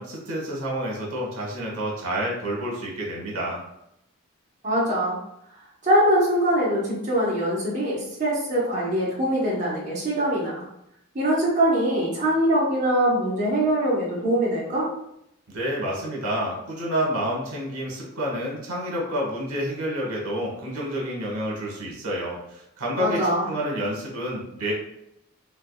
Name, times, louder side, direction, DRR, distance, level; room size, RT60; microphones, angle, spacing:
voice 1, 0.0-3.6 15.5-24.7, equal, 85° right, -2 dB, 1.1 m, -29 dB
voice 2, 4.6-5.2 5.8-10.6 11.1-14.9 23.0-23.4, right 1 dB, 35° right, -6 dB, 0.9 m, -23 dB
3.4 x 3.2 x 2.3 m, 0.78 s
head